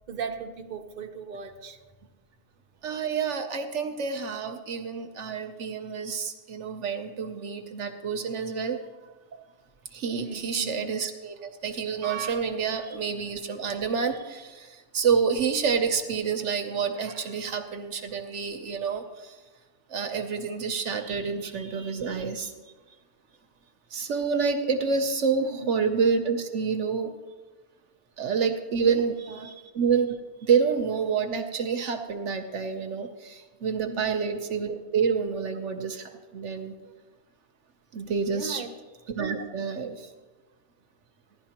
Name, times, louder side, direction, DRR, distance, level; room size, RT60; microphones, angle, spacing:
voice 1, 0.1-1.8 10.2-10.8 25.4-25.7 28.8-29.5 33.9-34.3 36.8-36.9 38.3-38.7, right 5 dB, 40° right, 3 dB, 0.8 m, -38 dB
voice 2, 2.8-8.8 9.9-19.4 19.9-22.5 23.9-27.1 28.2-36.7 37.9-38.6 39.1-40.1, right 6 dB, 65° right, 6 dB, 1.0 m, -28 dB
16.0 x 11.0 x 2.9 m, 1.3 s
omnidirectional pair, 1.4 m